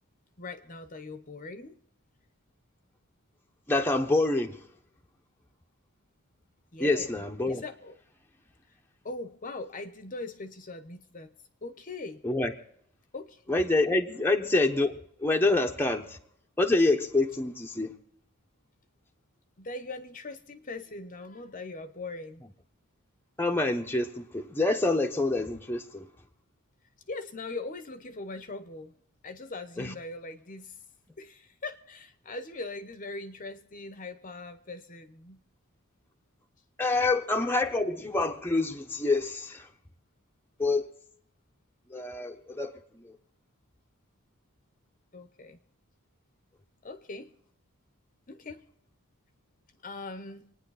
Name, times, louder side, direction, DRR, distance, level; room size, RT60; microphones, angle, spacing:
voice 1, 0.4-1.7 6.7-8.0 9.0-11.3 11.6-12.2 13.1-13.4 14.1-14.3 19.6-22.4 27.1-28.9 29.2-30.7 31.2-35.4 45.1-45.6 46.8-47.3 48.3-48.6 49.8-50.4, left 3 dB, 35° left, 0.9 m, -41 dB
voice 2, 3.7-4.6 6.8-7.6 12.2-12.5 13.5-16.2 16.6-17.9 23.4-26.1 29.8-29.9 36.8-39.7 40.6-40.9 41.9-43.2, left 2 dB, 10° left, 1.0 m, -27 dB
26.0 x 9.7 x 4.1 m
head